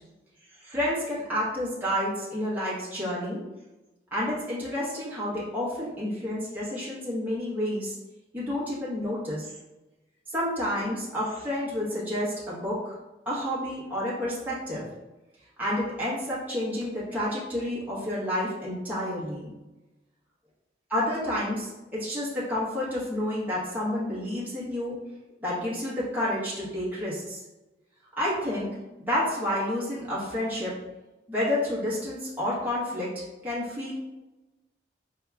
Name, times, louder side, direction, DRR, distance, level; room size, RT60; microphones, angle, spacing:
voice 1, 0.6-3.4 4.1-8.0 8.3-9.5 10.3-12.9 13.3-14.9 15.6-19.5 20.9-25.0 25.4-27.4 28.2-28.7 29.0-30.8 31.3-33.9, left 1 dB, 10° right, -9 dB, 1.0 m, -30 dB
4.5 x 2.8 x 2.3 m, 1.1 s
head